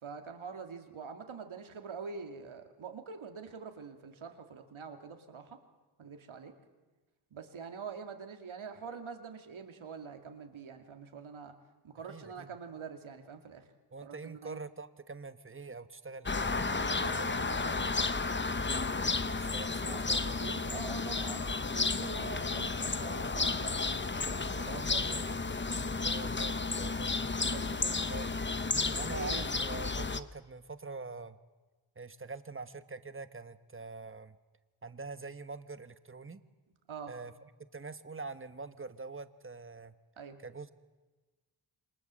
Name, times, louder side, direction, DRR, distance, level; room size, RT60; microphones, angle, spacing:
voice 1, 0.0-5.6 6.0-6.5 7.3-11.5 11.8-13.7 14.0-14.6 16.6-18.1 19.8-24.0 24.5-25.2 27.5-27.9 29.0-29.5 36.9-37.1 40.2-40.4, right 5 dB, 75° right, 5 dB, 2.6 m, -45 dB
voice 2, 12.1-12.5 13.9-17.8 19.2-20.4 24.6-27.1 28.1-28.3 28.7-31.4 32.0-34.4 34.8-36.4 37.1-37.3 37.7-39.9 40.4-40.7, right 4 dB, 25° right, 12 dB, 1.2 m, -45 dB
sound 1, 16.3-30.2, left 3 dB, 25° left, 0.9 m, -32 dB
28.0 x 24.5 x 7.6 m, 1.2 s
wide cardioid pair, 120°, 49 cm